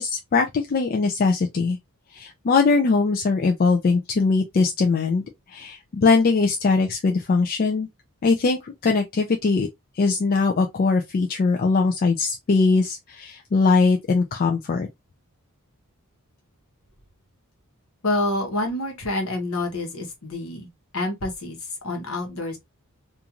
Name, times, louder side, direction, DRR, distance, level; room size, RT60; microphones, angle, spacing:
voice 1, 0.0-1.8 2.1-5.2 5.5-7.9 8.2-9.7 10.0-14.9, left 4 dB, 40° left, 0.3 m, -21 dB
voice 2, 18.0-22.6, left 2 dB, 65° left, 1.0 m, -28 dB
2.5 x 2.4 x 2.8 m
head